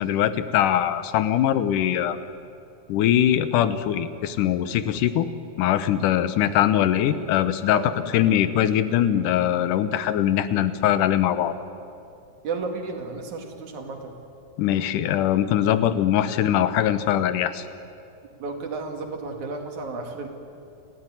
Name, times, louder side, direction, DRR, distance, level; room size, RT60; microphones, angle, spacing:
voice 1, 0.0-2.2 2.9-5.3 5.6-11.5 14.6-17.6, left 11 dB, 90° left, 13 dB, 2.5 m, -22 dB
voice 2, 12.4-14.1 18.4-20.3, right 3 dB, 70° right, 4 dB, 3.6 m, -32 dB
29.5 x 14.0 x 9.8 m, 2.5 s
omnidirectional pair, 3.6 m